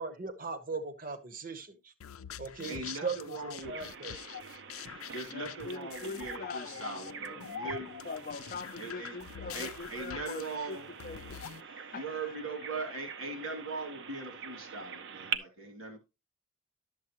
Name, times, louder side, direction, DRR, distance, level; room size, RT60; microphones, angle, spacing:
voice 1, 0.0-1.9 2.4-4.2, right 4 dB, 40° right, 1.0 m, -38 dB
sound 1, 2.0-11.6, left 8 dB, 85° left, 0.5 m, -44 dB
voice 2, 2.7-3.8 5.1-8.0 8.8-9.2 9.5-10.9 11.9-16.0, right 3 dB, 75° right, 2.6 m, -40 dB
Bird vocalization bird call bird song, 3.6-15.4, right 7 dB, 55° right, 0.7 m, -45 dB
voice 3, 4.8-7.5 7.8-12.4, left 3 dB, 40° left, 0.6 m, -44 dB
11.5 x 7.4 x 3.0 m
head